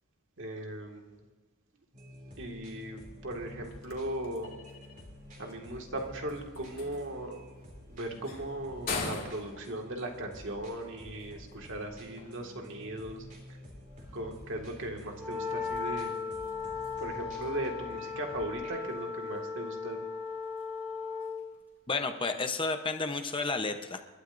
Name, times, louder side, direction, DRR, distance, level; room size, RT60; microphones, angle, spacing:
voice 1, 0.4-1.2 2.4-4.5 5.4-7.4 7.9-13.2 14.1-16.1 17.0-20.0, right 1 dB, 60° right, 2 dB, 2.1 m, -38 dB
sound 1, 1.9-18.9, left 1 dB, 40° right, 3.5 m, -50 dB
sound 2, 3.4-22.9, left 4 dB, 45° left, 2.2 m, -47 dB
Wind instrument woodwind instrument, 15.1-21.4, left 5 dB, 10° right, 2.9 m, -37 dB
voice 2, 21.9-24.0, left 3 dB, 25° left, 6 dB, 0.9 m, -31 dB
28.5 x 12.0 x 2.7 m, 1.4 s
head